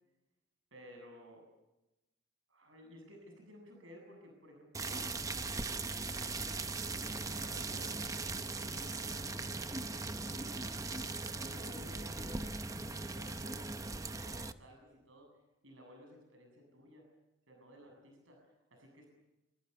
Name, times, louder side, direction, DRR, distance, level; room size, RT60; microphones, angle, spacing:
voice 1, 0.7-1.5 2.5-5.0 7.2-10.7 11.1-15.3 15.6-17.1 17.5-18.4 18.7-19.1, equal, 85° right, 2 dB, 7.7 m, -56 dB
sound 1, 4.7-14.5, right 3 dB, 15° right, 0.8 m, -39 dB
27.0 x 25.0 x 6.8 m, 0.96 s
head